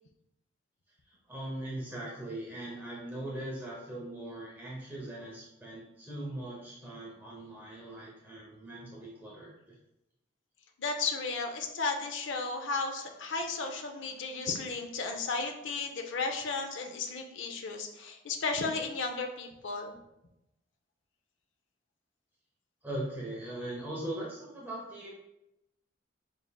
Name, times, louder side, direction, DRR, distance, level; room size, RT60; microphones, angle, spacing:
voice 1, 1.1-9.7 22.8-25.1, right 1 dB, 10° right, -5 dB, 0.7 m, -40 dB
voice 2, 10.8-19.9, left 4 dB, 75° left, 4 dB, 0.5 m, -34 dB
4.6 x 3.6 x 2.2 m, 0.88 s
head